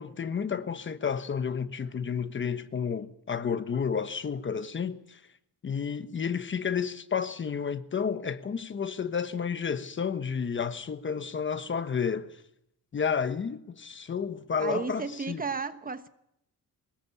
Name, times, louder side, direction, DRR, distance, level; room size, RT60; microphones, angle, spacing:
voice 1, 0.0-5.2 5.6-12.3 12.9-15.4, left 6 dB, 35° left, 1.1 m, -31 dB
voice 2, 14.6-16.1, right 5 dB, 25° right, 1.1 m, -33 dB
23.0 x 20.5 x 8.3 m
cardioid pair, 155°, 35 cm